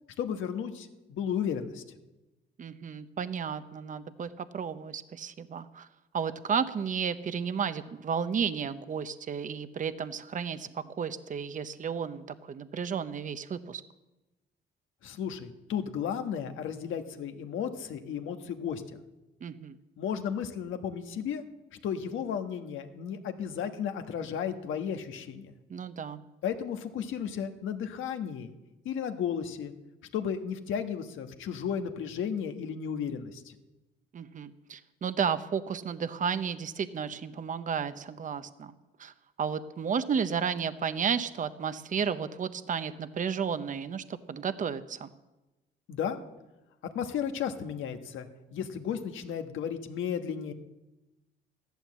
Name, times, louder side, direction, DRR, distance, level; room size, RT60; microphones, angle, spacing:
voice 1, 0.2-1.8 15.0-19.0 20.0-21.4 21.8-25.5 26.4-28.5 28.8-29.7 30.1-33.5 45.9-46.2 46.9-50.5, left 8 dB, 80° left, 7 dB, 1.4 m, -34 dB
voice 2, 2.6-5.9 6.1-13.8 19.4-19.8 25.7-26.2 34.1-38.7 39.0-45.1, right 7 dB, 40° right, 12 dB, 0.8 m, -33 dB
14.5 x 11.5 x 7.4 m, 1.0 s
cardioid pair, 90°, 20 cm